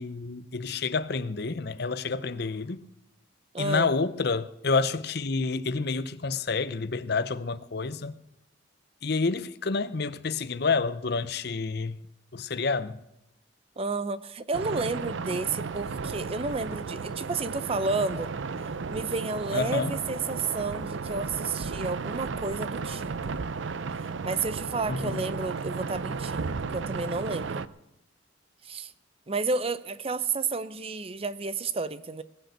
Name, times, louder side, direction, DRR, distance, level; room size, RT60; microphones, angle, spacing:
voice 1, 0.0-2.8 3.6-8.1 9.0-12.0 12.3-13.0 19.5-19.9 24.9-25.2, left 4 dB, 55° left, 0.7 m, -29 dB
voice 2, 3.5-3.9 13.8-18.3 18.9-23.4 24.2-27.6 28.6-28.9 29.3-32.2, right 3 dB, 30° right, 0.6 m, -31 dB
sound 1, 14.5-27.7, right 4 dB, 75° right, 0.6 m, -34 dB
20.0 x 6.7 x 8.1 m
head